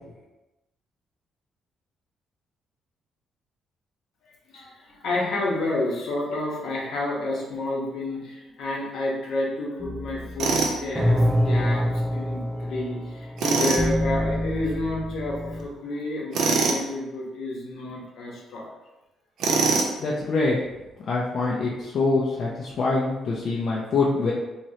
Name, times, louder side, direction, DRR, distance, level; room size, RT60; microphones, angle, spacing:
voice 1, 4.2-18.7, left 2 dB, 75° left, -3 dB, 0.9 m, -30 dB
sound 1, 9.8-15.7, equal, 5° right, 0.5 m, -26 dB
Tools, 10.4-10.8 13.4-13.8 16.3-16.8 19.4-20.0, right 4 dB, 75° right, 0.6 m, -22 dB
voice 2, 20.0-20.6 21.1-24.3, left 3 dB, 60° left, -5 dB, 0.5 m, -24 dB
3.1 x 2.9 x 2.7 m, 1.0 s
cardioid pair, 90°, 0 cm